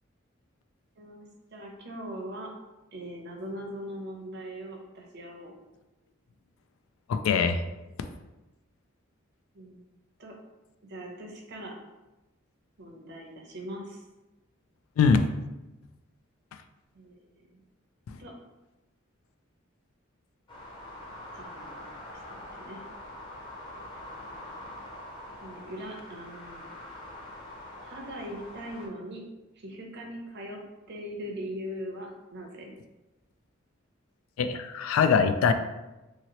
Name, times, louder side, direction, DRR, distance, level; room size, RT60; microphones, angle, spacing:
voice 1, 1.0-2.5 2.9-5.5 9.5-9.8 10.2-10.3 10.9-11.7 12.8-14.0 16.9-17.6 18.2-18.3 21.4-21.9 22.3-22.8 25.4-26.6 27.8-29.2 29.6-30.6 30.9-32.7, equal, 55° right, 0 dB, 0.7 m, -40 dB
voice 2, 7.1-7.6 15.0-15.2 34.4-35.5, left 6 dB, 90° left, 9 dB, 0.3 m, -22 dB
sound 1, 20.5-28.9, left 1 dB, 25° left, 0.7 m, -44 dB
2.9 x 2.8 x 2.9 m, 1.0 s
head